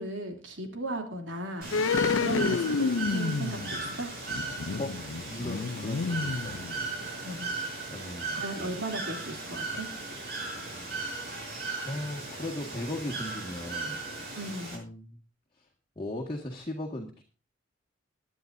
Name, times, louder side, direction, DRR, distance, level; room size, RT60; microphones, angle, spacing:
voice 1, 0.0-1.8 2.1-4.1 7.2-7.5 8.3-9.9 14.3-14.8, right 1 dB, 70° right, 4 dB, 3.0 m, -36 dB
Bird / Water, 1.6-14.8, right 3 dB, 55° right, 7.5 m, -37 dB
sound 1, 1.7-7.2 7.4-7.5, left 4 dB, 85° left, 0.5 m, -30 dB
voice 2, 4.8-6.6 7.9-8.7 11.8-14.1 14.7-15.2 15.5-15.7 16.0-17.2, left 1 dB, 25° left, -2 dB, 1.8 m, -38 dB
21.5 x 10.0 x 2.7 m, 0.34 s
head